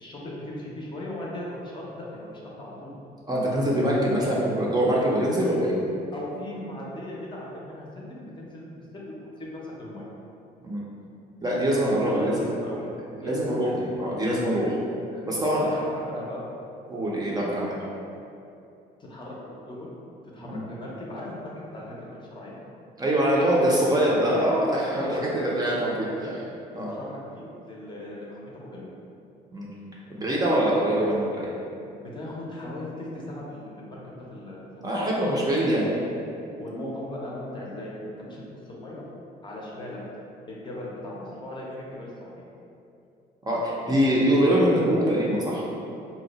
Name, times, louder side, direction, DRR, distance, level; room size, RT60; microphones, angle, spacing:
voice 1, 0.0-3.0 6.1-10.1 12.1-12.3 12.6-12.9 13.2-13.8 14.5-14.7 15.1-15.2 15.6-16.4 19.0-19.9 20.3-22.6 25.0-25.3 25.7-26.3 26.7-28.9 32.1-35.0 36.6-39.0 39.4-40.0 40.5-42.4, left 1 dB, 30° left, -4 dB, 0.6 m, -38 dB
voice 2, 3.3-5.8 10.6-10.8 11.4-12.5 13.1-14.7 15.2-15.6 16.9-17.8 20.4-20.6 23.0-25.1 25.3-26.1 26.8-26.9 29.5-29.7 30.1-31.5 34.8-35.9 43.5-45.6, equal, 25° right, -5 dB, 0.5 m, -23 dB
2.7 x 2.0 x 4.0 m, 2.6 s
cardioid pair, 110°, 17 cm